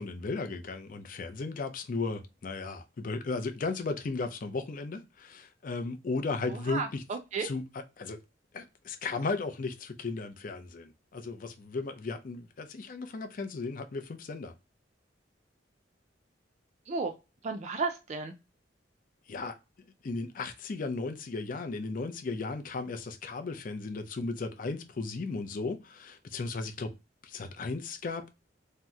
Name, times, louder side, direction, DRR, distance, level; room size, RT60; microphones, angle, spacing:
voice 1, 0.0-7.0 7.4-7.6 8.0-8.2 8.5-14.5 19.3-19.6 20.0-26.9 27.2-28.3, left 3 dB, 45° left, 0.4 m, -35 dB
voice 2, 6.5-7.5 16.9-17.1 17.4-18.3, right 4 dB, 40° right, 0.3 m, -33 dB
2.8 x 2.0 x 3.5 m
head